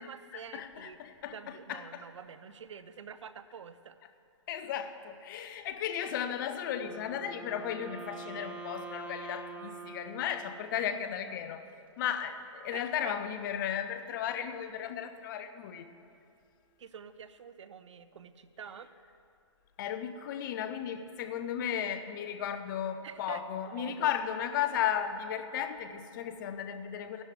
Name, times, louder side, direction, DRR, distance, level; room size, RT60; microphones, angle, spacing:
voice 1, 0.0-1.0 1.3-4.0 12.7-13.1 16.8-18.9 23.0-24.1, right 7 dB, 75° right, 13 dB, 0.6 m, -47 dB
voice 2, 0.5-2.0 4.5-11.6 12.0-15.9 19.8-27.2, left 9 dB, 40° left, 10 dB, 0.7 m, -35 dB
Wind instrument woodwind instrument, 6.7-10.9, right 4 dB, 5° right, 0.8 m, -45 dB
15.5 x 11.5 x 3.3 m, 2.5 s
hypercardioid pair, 135°, 16 cm